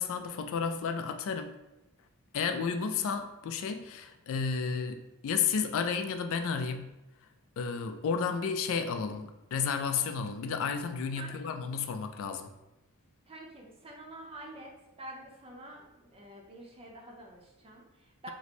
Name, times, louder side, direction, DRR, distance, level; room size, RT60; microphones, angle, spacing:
voice 1, 0.0-1.5 2.3-7.0 7.6-12.5, left 6 dB, 60° left, 8 dB, 0.3 m, -32 dB
voice 2, 13.3-14.7 15.0-18.3, right 1 dB, 25° right, -1 dB, 0.6 m, -47 dB
3.0 x 2.0 x 4.1 m, 0.97 s
head